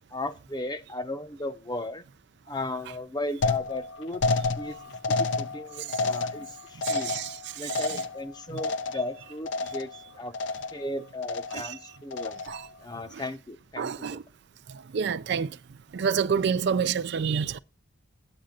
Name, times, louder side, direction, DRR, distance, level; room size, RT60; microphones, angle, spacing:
voice 1, 0.1-2.0 2.5-4.2 4.6-4.8 5.1-7.1 7.6-9.9 10.2-10.3 10.7-12.4 12.8-14.2, left 2 dB, 20° left, 0.7 m, -35 dB
sound 1, 3.4-9.2 9.5-10.0 10.3-10.9 11.2-11.7 12.1-12.7, left 3 dB, 60° left, 0.5 m, -30 dB
voice 2, 6.8-7.3 12.5-12.6 13.8-14.2 14.9-15.5 15.9-17.6, right 6 dB, 55° right, 0.4 m, -27 dB
8.8 x 8.6 x 3.8 m
head